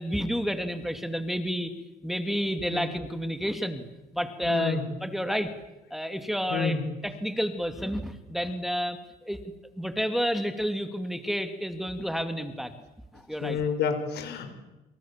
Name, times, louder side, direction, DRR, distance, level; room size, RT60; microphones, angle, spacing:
voice 1, 0.0-1.7 2.0-3.8 4.1-5.5 5.9-9.4 9.8-12.7 13.1-13.6, equal, ahead, 8 dB, 2.3 m, -30 dB
voice 2, 4.5-4.8 6.5-6.8 13.4-14.5, left 6 dB, 75° left, 8 dB, 5.8 m, -28 dB
28.5 x 27.0 x 7.4 m, 1.0 s
cardioid pair, 110°, 17 cm